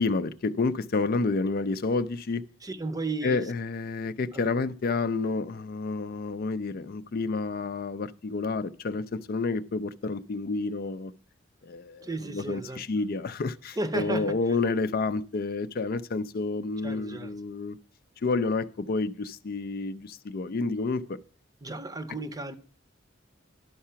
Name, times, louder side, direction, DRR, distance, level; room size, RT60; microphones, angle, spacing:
voice 1, 0.0-2.4 3.2-11.1 11.6-17.8 18.2-21.2, left 3 dB, 50° left, 0.4 m, -29 dB
voice 2, 2.6-3.5 4.3-4.4 12.0-12.8 13.8-14.4 16.8-17.3 21.6-22.5, right 2 dB, 20° right, 0.7 m, -34 dB
11.0 x 5.7 x 5.7 m
head